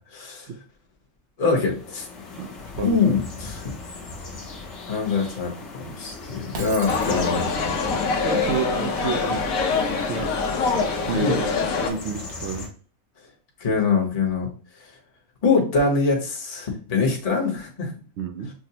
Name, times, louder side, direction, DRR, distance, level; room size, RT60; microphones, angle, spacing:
voice 1, 0.1-0.5 1.4-2.1 2.8-3.7 4.9-7.5 11.1-11.4 13.6-14.5 14.8-14.9 15.4-17.9, left 4 dB, 30° left, -1 dB, 0.9 m, -23 dB
sound 1, 1.5-12.7, left 3 dB, 55° left, 1.2 m, -39 dB
voice 2, 2.4-3.0 8.2-10.3 10.6-10.8 11.1-11.5 11.8-12.7 18.2-18.5, right 6 dB, 65° right, 6 dB, 0.7 m, -30 dB
Shatter, 6.5-7.8, right 4 dB, 90° right, 1.3 m, -38 dB
sound 2, 6.9-11.9, left 4 dB, 75° left, 1.1 m, -24 dB
5.9 x 2.1 x 2.7 m, 0.39 s
omnidirectional pair, 1.5 m